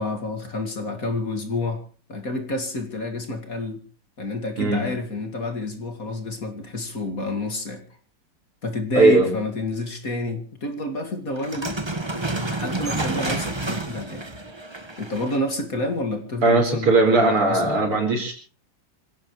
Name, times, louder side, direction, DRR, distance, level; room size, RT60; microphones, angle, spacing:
voice 1, 0.0-1.8 2.1-3.8 4.2-7.8 8.6-11.8 12.5-14.2 15.0-18.0, left 2 dB, 40° left, 7 dB, 2.6 m, -29 dB
voice 2, 8.9-9.3 16.4-18.3, right 3 dB, 80° right, 4 dB, 5.2 m, -18 dB
sound 1, 11.4-15.5, right 2 dB, 15° right, 1.2 m, -29 dB
26.5 x 16.5 x 3.2 m, 0.36 s
omnidirectional pair, 2.4 m